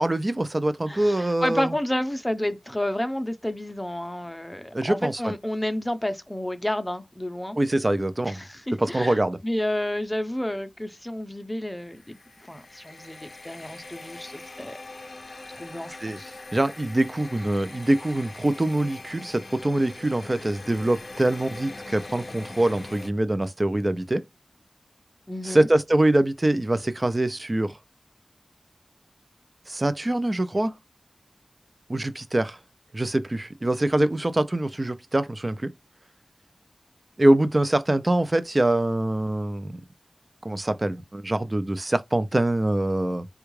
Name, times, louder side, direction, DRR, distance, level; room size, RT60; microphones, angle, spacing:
voice 1, 0.0-1.7 4.7-5.3 7.6-8.4 8.8-9.4 16.0-16.2 16.5-24.2 25.4-27.8 29.7-30.8 31.9-32.6 32.9-35.7 37.2-39.8 40.4-43.3, right 1 dB, 40° right, 0.5 m, -24 dB
voice 2, 0.9-7.6 8.3-12.2 12.5-14.7 15.5-16.3 25.3-25.7, left 1 dB, 15° left, 0.6 m, -30 dB
sound 1, 11.8-23.1, left 2 dB, 60° left, 0.4 m, -42 dB
3.4 x 2.3 x 3.1 m
cardioid pair, 40°, 0 cm